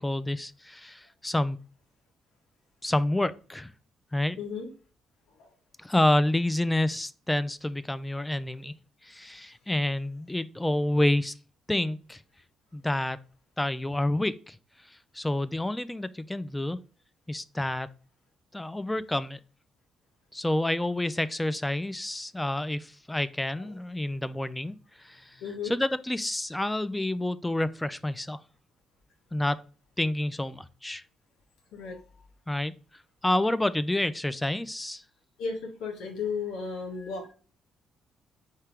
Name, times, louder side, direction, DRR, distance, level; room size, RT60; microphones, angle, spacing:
voice 1, 0.0-1.6 2.8-3.7 4.1-4.4 5.8-8.7 9.0-11.3 11.7-12.2 12.7-13.2 13.6-14.6 15.1-16.8 17.3-17.9 18.5-19.4 20.3-25.2 25.7-28.4 29.3-29.6 30.0-31.0 32.5-32.7 33.2-35.0, left 1 dB, 10° left, 0.3 m, -28 dB
voice 2, 4.4-4.7 5.4-5.5 23.6-23.7 25.4-25.7 31.7-32.0 35.4-37.3, left 5 dB, 85° left, 1.3 m, -34 dB
4.5 x 2.8 x 3.4 m
cardioid pair, 90°, 0 cm